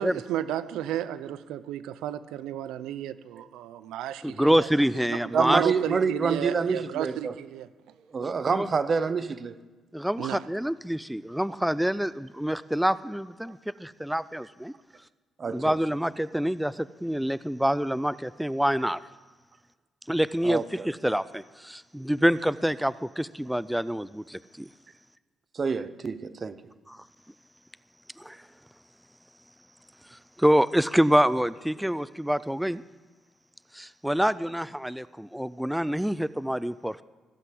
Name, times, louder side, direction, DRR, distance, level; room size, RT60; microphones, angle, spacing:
voice 1, 0.0-4.7 5.1-7.7 10.2-10.4, right 12 dB, 90° right, 0.5 m, -33 dB
voice 2, 4.2-5.7 8.5-8.7 9.9-14.7 15.5-19.0 20.1-24.7 26.9-27.0 28.2-28.5 30.1-32.8 33.7-37.0, equal, 5° right, 0.3 m, -26 dB
voice 3, 5.3-7.4 8.1-9.6 15.4-15.7 20.4-20.9 25.5-26.6, right 5 dB, 40° right, 0.8 m, -27 dB
16.0 x 8.1 x 7.6 m
cardioid pair, 90°, 0 cm